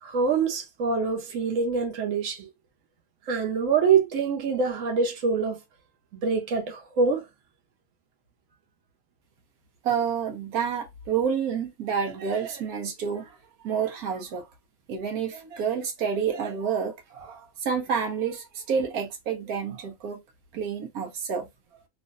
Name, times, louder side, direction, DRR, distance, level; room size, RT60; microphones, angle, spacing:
voice 1, 0.0-2.5 3.3-5.6 6.1-7.3, right 5 dB, 65° right, 1.2 m, -25 dB
voice 2, 9.8-13.4 13.6-14.5 14.9-20.2 20.5-21.5, right 7 dB, 85° right, 1.2 m, -29 dB
3.1 x 2.5 x 2.4 m
omnidirectional pair, 1.5 m